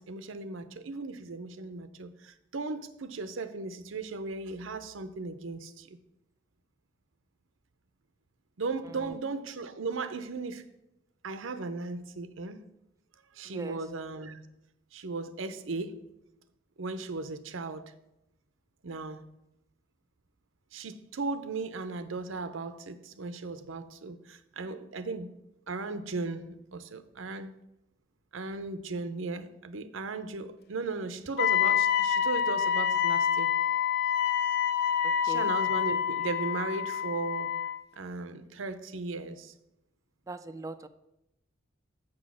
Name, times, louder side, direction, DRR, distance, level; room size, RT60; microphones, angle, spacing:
voice 1, 0.0-6.0 8.6-10.6 11.2-12.6 13.3-14.4 14.9-16.0 16.8-17.8 18.8-19.2 20.7-25.3 25.7-27.5 28.3-33.5 35.2-37.5 38.0-39.5, right 3 dB, 90° right, 0.7 m, -36 dB
Wind instrument woodwind instrument, 31.4-37.8, left 9 dB, 55° left, 0.5 m, -27 dB
voice 2, 35.0-35.5 40.3-40.9, right 2 dB, 15° right, 0.3 m, -40 dB
7.5 x 6.2 x 6.2 m
head